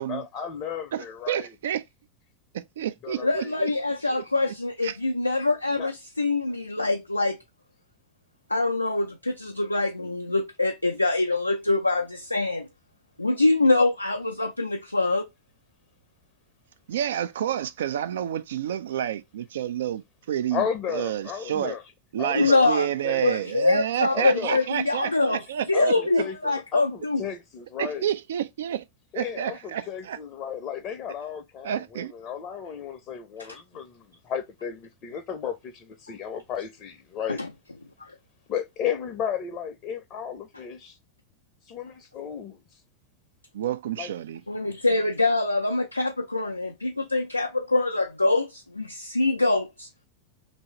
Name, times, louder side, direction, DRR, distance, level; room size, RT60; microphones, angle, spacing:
voice 1, 0.0-1.5 3.0-3.6 5.7-5.9 20.5-21.8 22.2-23.5 24.1-24.7 25.7-28.1 29.1-37.4 38.5-41.0 41.6-42.8 44.0-44.1, left 8 dB, 35° left, 0.6 m, -34 dB
voice 2, 0.9-1.8 2.5-3.7 4.5-4.6 4.8-5.0 16.9-21.7 22.1-26.2 27.8-28.8 29.1-30.2 31.6-32.1 43.5-44.4, right 10 dB, 60° right, 0.4 m, -29 dB
voice 3, 3.2-7.4 8.5-12.7 13.2-15.3 22.3-22.9 23.2-25.4 25.7-27.2 33.4-33.5 37.3-37.5 38.0-38.1 44.5-49.9, left 2 dB, 85° left, 0.4 m, -24 dB
3.0 x 2.7 x 4.4 m
figure-of-eight pair, 90°, 0 cm